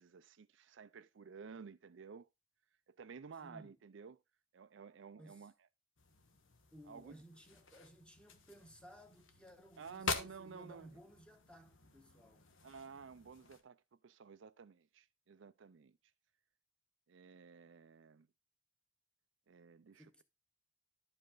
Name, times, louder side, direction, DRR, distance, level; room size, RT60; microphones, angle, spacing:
voice 1, 0.0-2.3 2.9-4.2 4.5-5.5 6.9-7.2 9.8-10.9 12.6-16.0 17.1-18.3 19.5-20.2, right 5 dB, 70° right, 0.4 m, -53 dB
voice 2, 3.4-3.8 5.1-5.5 6.7-12.5 19.9-20.2, equal, 5° left, 1.2 m, -58 dB
sound 1, 6.0-13.6, left 4 dB, 75° left, 1.4 m, -47 dB
11.5 x 5.4 x 3.8 m
head